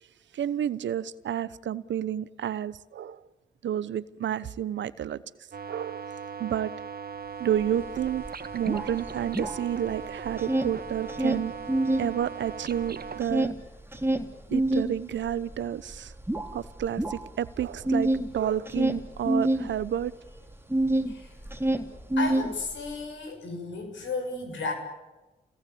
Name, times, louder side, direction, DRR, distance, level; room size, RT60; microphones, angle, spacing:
voice 1, 0.3-3.3 3.6-5.2 5.7-6.1 6.4-6.7 7.4-8.2 8.5-11.5 12.0-13.5 14.5-16.1 16.5-20.1, right 10 dB, 80° right, 0.9 m, -30 dB
sound 1, 5.5-13.2, right 6 dB, 55° right, 1.6 m, -39 dB
sound 2, 7.6-7.7 8.0-10.0 10.3-12.1 12.5-21.1 21.4-23.0, right 1 dB, 10° right, 3.2 m, -27 dB
voice 2, 22.2-24.7, left 3 dB, 85° left, 6.5 m, -33 dB
28.0 x 18.0 x 8.6 m
supercardioid pair, 40°, 19 cm